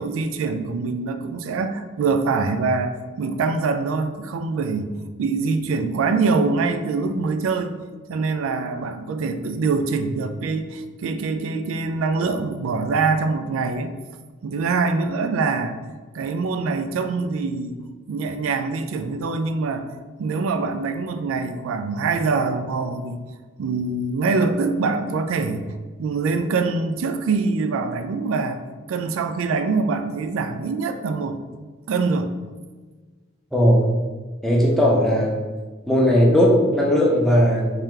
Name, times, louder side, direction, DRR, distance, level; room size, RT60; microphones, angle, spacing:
voice 1, 0.0-4.9 5.2-7.7 8.1-13.9 14.4-15.8 16.1-17.8 18.1-19.9 20.2-23.2 23.6-25.7 26.0-28.6 28.9-31.4 31.9-32.3, right 4 dB, 90° right, 8 dB, 0.3 m, -24 dB
voice 2, 33.5-33.9 34.4-35.4 35.9-37.8, equal, ahead, -3 dB, 0.6 m, -17 dB
3.3 x 2.7 x 3.6 m, 1.3 s
head